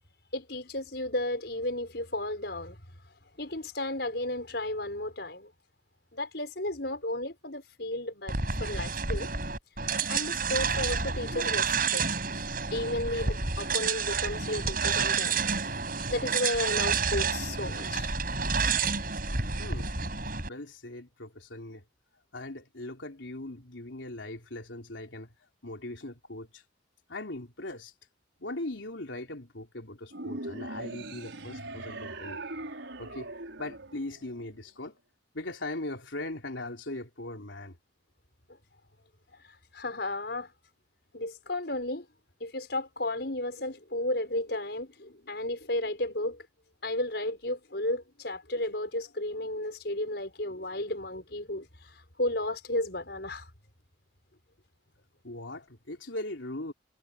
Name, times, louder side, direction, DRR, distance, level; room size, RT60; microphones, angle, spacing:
voice 1, 0.3-2.8 3.4-5.5 6.1-8.3 8.6-9.3 10.1-12.0 12.7-15.4 16.1-18.1 39.4-40.5 41.1-42.1 42.4-46.5 46.8-53.5, left 1 dB, 60° left, 6.5 m, -33 dB
sound 1, 8.3-20.5, right 5 dB, 50° right, 6.9 m, -29 dB
voice 2, 20.5-21.8 22.3-25.3 25.6-26.6 27.1-27.9 28.4-32.4 33.0-33.3 33.6-35.0 35.3-37.8 55.2-56.7, left 2 dB, 85° left, 3.7 m, -39 dB
sound 2, 30.1-34.6, right 2 dB, 80° right, 5.6 m, -40 dB
head